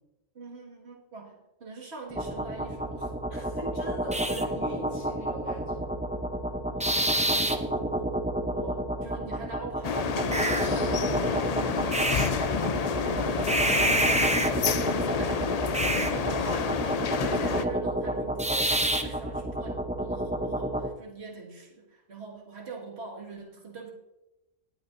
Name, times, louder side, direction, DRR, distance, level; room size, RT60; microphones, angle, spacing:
voice 1, 0.3-3.2 6.7-15.6 15.9-16.9 17.2-23.9, right 4 dB, 55° right, -1 dB, 2.1 m, -43 dB
sound 1, 2.1-20.9, right 1 dB, 10° right, 0.3 m, -28 dB
voice 2, 3.3-6.0 13.1-13.4 15.9-16.9, equal, 85° left, -2 dB, 5.0 m, -42 dB
sound 2, 9.8-17.6, left 6 dB, 70° left, 0.3 m, -29 dB
18.5 x 9.0 x 2.6 m, 0.96 s
omnidirectional pair, 1.4 m